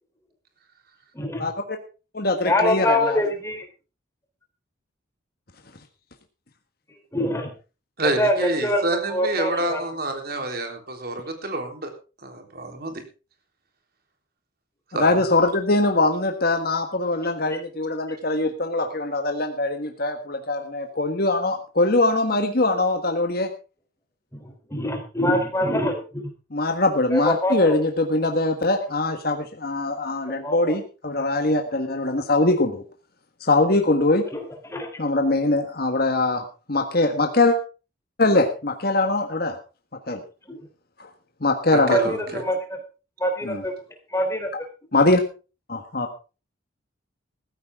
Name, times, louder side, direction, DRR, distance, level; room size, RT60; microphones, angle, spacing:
voice 1, 1.1-1.4 2.4-3.6 7.1-7.5 8.2-8.8 9.1-9.8 24.4-26.3 27.1-27.8 30.4-30.7 34.3-34.4 34.7-34.9 40.5-40.6 41.9-42.6 43.2-43.7 44.1-44.5, left 1 dB, 15° left, 4 dB, 3.4 m, -24 dB
voice 2, 2.1-3.2 14.9-23.5 26.5-32.8 33.4-34.2 35.0-37.6 38.2-39.6 40.1-40.2 41.0-41.1 41.4-42.0 43.4-43.6 44.9-45.2 45.7-46.1, left 2 dB, 50° left, 4 dB, 1.6 m, -22 dB
voice 3, 8.0-11.9 12.2-13.0 14.9-15.1 41.7-42.4, right 2 dB, 50° right, 4 dB, 3.7 m, -28 dB
16.0 x 14.0 x 3.7 m, 0.33 s
head